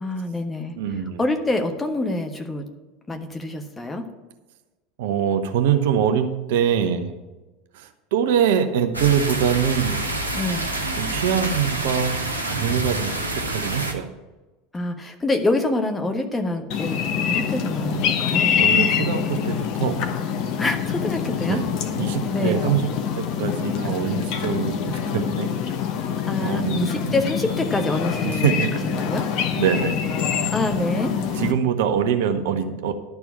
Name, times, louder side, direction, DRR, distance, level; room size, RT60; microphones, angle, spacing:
voice 1, 0.0-0.7 1.2-2.6 3.1-4.0 10.3-10.7 14.7-18.6 20.6-21.6 22.3-22.7 26.3-28.6 29.0-29.3 30.5-31.1, left 2 dB, 15° left, 5 dB, 1.3 m, -26 dB
voice 2, 0.7-1.2 5.0-7.1 7.7-10.0 11.0-12.2 12.5-14.1 18.6-20.0 21.4-21.7 22.0-22.9 23.1-25.5 26.4-27.1 28.2-28.8 29.6-30.0 31.3-32.9, right 8 dB, 60° right, 8 dB, 0.8 m, -23 dB
sound 1, 8.9-13.9, right 2 dB, 85° right, 1.3 m, -27 dB
sound 2, 16.7-31.5, left 7 dB, 45° left, 1.2 m, -25 dB
11.5 x 4.7 x 8.4 m, 1.1 s
figure-of-eight pair, 75°, 0 cm